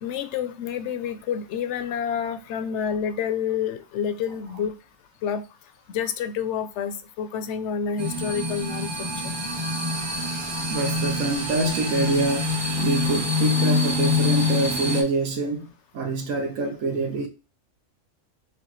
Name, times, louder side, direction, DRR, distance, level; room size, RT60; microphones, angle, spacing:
voice 1, 0.0-4.7 5.2-5.4 5.9-9.4, left 7 dB, 70° left, 0.8 m, -28 dB
sound 1, 8.0-15.0, left 2 dB, 25° right, 0.8 m, -25 dB
voice 2, 10.7-17.3, right 3 dB, 90° right, 1.3 m, -26 dB
6.1 x 2.4 x 3.0 m
omnidirectional pair, 1.3 m